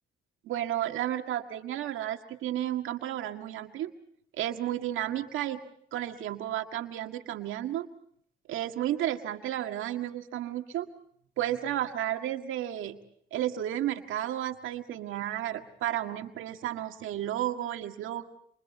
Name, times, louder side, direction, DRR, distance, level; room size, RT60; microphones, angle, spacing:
voice 1, 0.4-3.9 4.3-5.6 5.9-7.9 8.5-10.9 11.4-13.0 13.3-18.2, right 12 dB, 85° right, 5 dB, 1.9 m, -32 dB
29.5 x 26.5 x 4.2 m, 0.67 s
cardioid pair, 90°, 20 cm